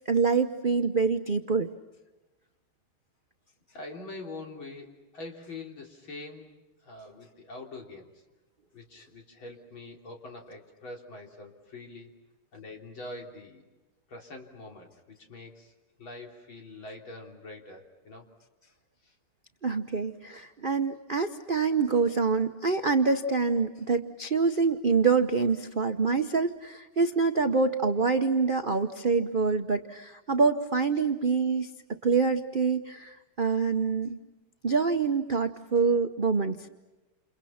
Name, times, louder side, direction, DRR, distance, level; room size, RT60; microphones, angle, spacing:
voice 1, 0.1-1.7 19.6-34.2 34.6-36.7, right 4 dB, 45° right, 6 dB, 0.6 m, -26 dB
voice 2, 3.7-6.5 6.8-8.1 8.7-12.1 12.5-13.7 14.1-15.7 16.0-18.3 19.0-19.1, left 2 dB, 65° left, 1 dB, 4.2 m, -44 dB
29.5 x 29.0 x 5.8 m, 1.1 s
omnidirectional pair, 2.3 m